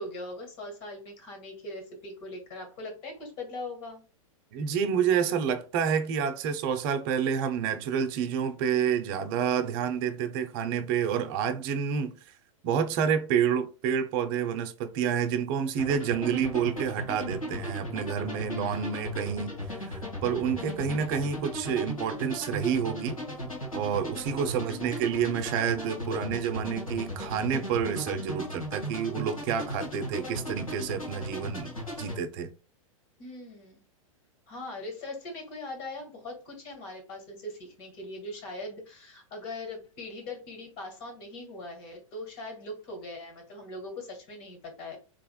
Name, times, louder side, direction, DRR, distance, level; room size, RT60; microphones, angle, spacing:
voice 1, 0.0-4.0 18.5-18.9 24.5-25.0 33.2-33.8 34.5-45.0, left 2 dB, 40° left, 1.8 m, -41 dB
voice 2, 4.5-12.1 12.6-19.8 20.2-23.2 23.7-31.7 32.0-32.5, right 7 dB, 40° right, 0.6 m, -29 dB
sound 1, 15.8-32.2, equal, 85° left, 1.7 m, -36 dB
3.5 x 3.3 x 2.2 m
figure-of-eight pair, 100°, 17 cm